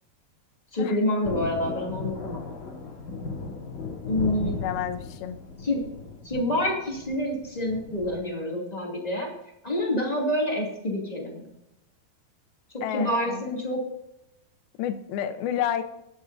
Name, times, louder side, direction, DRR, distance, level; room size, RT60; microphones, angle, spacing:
voice 1, 0.7-2.4 4.0-4.6 5.6-5.8 6.2-9.3 9.6-11.4 12.9-13.8, left 1 dB, 15° left, -2 dB, 1.8 m, -27 dB
Thunder, 1.2-8.2, left 4 dB, 55° left, 3.2 m, -36 dB
voice 2, 4.6-5.4 12.8-13.6 14.8-15.8, left 10 dB, 75° left, 7 dB, 2.6 m, -30 dB
21.5 x 8.2 x 2.7 m, 0.86 s
omnidirectional pair, 4.5 m